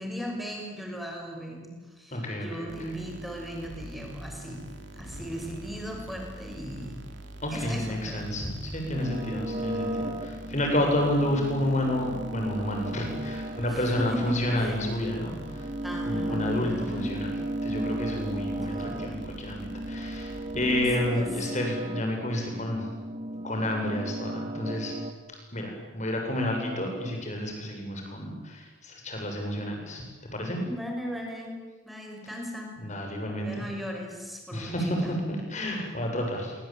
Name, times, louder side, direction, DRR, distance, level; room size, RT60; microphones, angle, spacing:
voice 1, 0.0-4.6 4.9-7.0 7.5-8.2 13.7-14.8 15.8-17.1 18.7-19.2 21.0-21.5 30.6-32.7 33.4-35.1 35.7-35.9, equal, ahead, 1 dB, 6.5 m, -37 dB
voice 2, 2.1-2.7 7.4-15.3 16.1-17.3 17.6-22.8 23.4-25.0 25.5-30.6 32.8-33.5 34.5-36.6, left 1 dB, 35° left, 2 dB, 7.7 m, -30 dB
sound 1, 2.7-21.5, right 1 dB, 60° right, 3.4 m, -45 dB
sound 2, 8.9-25.1, right 1 dB, 30° right, 2.3 m, -35 dB
27.0 x 24.0 x 9.2 m, 1.2 s
head